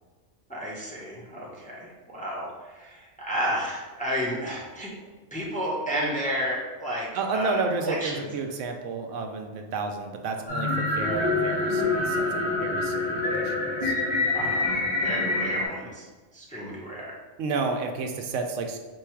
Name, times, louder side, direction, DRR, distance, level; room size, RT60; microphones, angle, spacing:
voice 1, 0.5-4.9 5.3-8.3 14.3-16.1 16.3-17.2, equal, 10° left, -4 dB, 0.7 m, -32 dB
voice 2, 7.1-13.9 17.4-18.8, right 4 dB, 80° right, 4 dB, 0.9 m, -31 dB
sound 1, 10.5-15.7, left 2 dB, 35° left, 1.4 m, -26 dB
4.7 x 2.3 x 4.4 m, 1.3 s
omnidirectional pair, 1.3 m